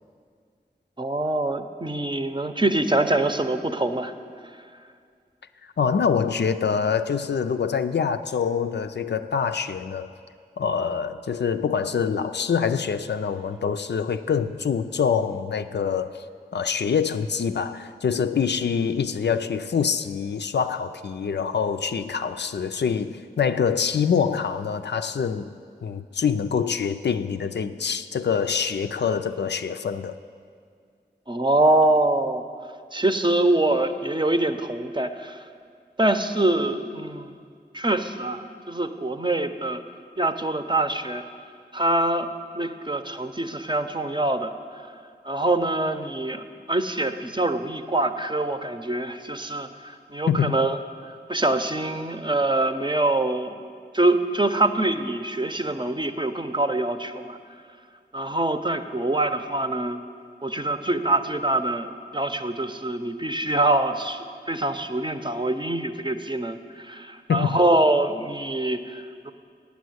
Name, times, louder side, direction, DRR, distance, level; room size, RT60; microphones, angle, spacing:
voice 1, 1.0-4.1 31.3-32.4 32.9-35.4 36.0-37.4 37.7-39.8 40.2-41.2 41.7-42.3 42.5-44.5 45.2-50.8 51.3-53.5 53.9-57.4 58.1-60.0 60.4-61.9 62.1-69.3, right 2 dB, 25° right, 8 dB, 0.6 m, -24 dB
voice 2, 5.8-10.1 10.6-16.2 16.5-25.5 25.8-30.1 50.3-50.6 67.3-67.6, left 6 dB, 85° left, 9 dB, 0.4 m, -25 dB
8.3 x 8.2 x 7.9 m, 2.2 s
wide cardioid pair, 45°, 17 cm